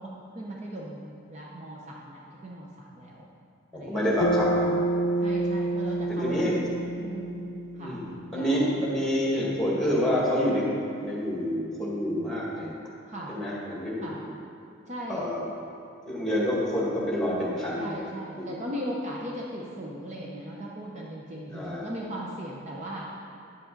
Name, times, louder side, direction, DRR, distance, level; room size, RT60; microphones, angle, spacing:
voice 1, 0.0-3.2 3.7-4.0 5.2-6.6 7.0-7.5 7.8-8.7 13.1-13.4 14.0-14.2 14.8-15.3 17.8-23.1, equal, 35° right, -3 dB, 0.8 m, -38 dB
voice 2, 3.9-4.7 6.2-6.6 7.8-10.6 11.0-12.7 13.3-14.2 15.1-15.4 16.1-17.9 18.4-18.5 21.5-21.9, equal, ahead, -6 dB, 1.9 m, -27 dB
Bass guitar, 4.2-8.6, right 1 dB, 40° left, 0.5 m, -28 dB
9.9 x 7.5 x 3.9 m, 2.7 s
head